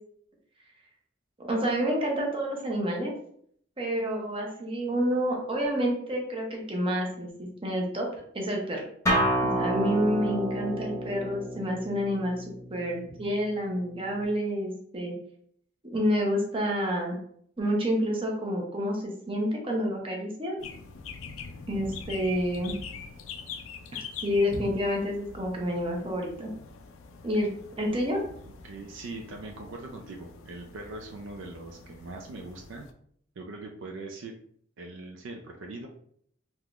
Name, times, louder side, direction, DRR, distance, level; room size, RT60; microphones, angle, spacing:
voice 1, 1.5-3.1 3.8-8.1 8.3-8.8 9.4-15.1 15.9-17.2 17.6-20.6 21.7-22.7 24.2-26.5 27.2-27.5 27.8-28.2, equal, 30° right, -1 dB, 0.8 m, -28 dB
Acoustic guitar, 9.1-14.2, equal, 15° left, 0.8 m, -30 dB
sound 1, 20.6-32.9, left 5 dB, 85° left, 0.4 m, -44 dB
voice 2, 28.6-32.9 33.4-34.4 34.8-35.9, right 2 dB, 70° right, 2 dB, 0.4 m, -41 dB
3.7 x 2.9 x 2.4 m, 0.65 s
head